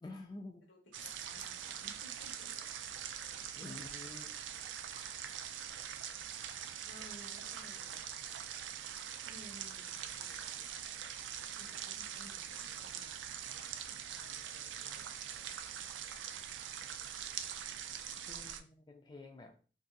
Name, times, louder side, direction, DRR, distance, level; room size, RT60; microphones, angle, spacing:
voice 1, 0.0-0.6 3.5-4.4 18.3-19.5, left 2 dB, 25° left, 3 dB, 0.3 m, -49 dB
voice 2, 0.7-4.0 6.8-8.2 9.2-10.8 11.6-13.4 13.9-15.2, equal, 85° left, 0 dB, 1.0 m, -58 dB
sound 1, 0.9-18.6, right 9 dB, 90° right, 0.3 m, -43 dB
2.6 x 2.3 x 3.8 m, 0.38 s
head